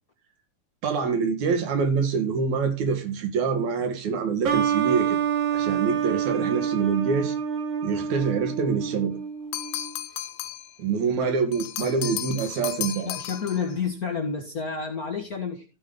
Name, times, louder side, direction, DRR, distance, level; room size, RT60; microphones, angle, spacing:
voice 1, 0.8-5.2 5.5-7.4 7.8-9.2 10.8-13.1, right 5 dB, 75° right, 3.0 m, -25 dB
sound 1, 4.4-9.9, right 8 dB, 55° right, 2.3 m, -27 dB
sound 2, 9.5-10.8 11.5-13.7, left 12 dB, 75° left, 2.0 m, -34 dB
voice 2, 11.8-12.2 13.0-15.6, left 5 dB, 40° left, 1.4 m, -30 dB
15.0 x 5.2 x 3.8 m
omnidirectional pair, 3.3 m